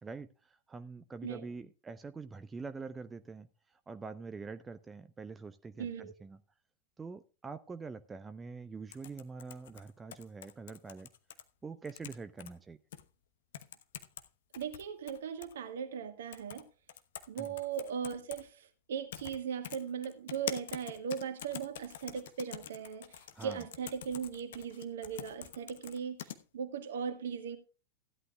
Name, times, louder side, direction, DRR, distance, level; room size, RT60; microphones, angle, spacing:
voice 1, 0.0-6.4 7.0-11.1 11.6-12.8 17.4-17.5 23.3-23.6, right 4 dB, 15° right, 0.6 m, -45 dB
voice 2, 5.8-6.1 14.5-16.6 17.3-27.6, right 7 dB, 60° right, 1.6 m, -38 dB
sound 1, 8.9-11.4 11.8-12.5 12.9-13.0 13.5-14.2 14.5-15.5 16.3-16.6 16.9-18.4 19.1-19.4 19.6-26.4, left 11 dB, 55° left, 1.0 m, -45 dB
16.0 x 11.0 x 2.3 m
figure-of-eight pair, 90°, 0 cm